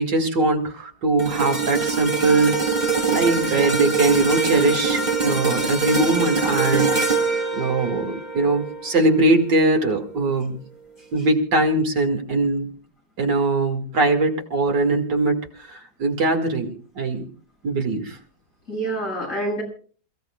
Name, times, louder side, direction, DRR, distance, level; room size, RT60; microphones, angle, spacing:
voice 1, 0.0-2.5 3.1-6.9 7.5-10.6 11.1-12.7 13.2-15.4 15.7-17.3 17.6-18.2, right 2 dB, 75° right, 3 dB, 2.8 m, -21 dB
sound 1, 1.2-9.5 10.0-10.2, right 4 dB, 25° right, 2.0 m, -23 dB
voice 2, 18.7-19.6, right 1 dB, 45° left, -1 dB, 7.2 m, -28 dB
28.0 x 16.5 x 2.3 m, 0.42 s
omnidirectional pair, 1.9 m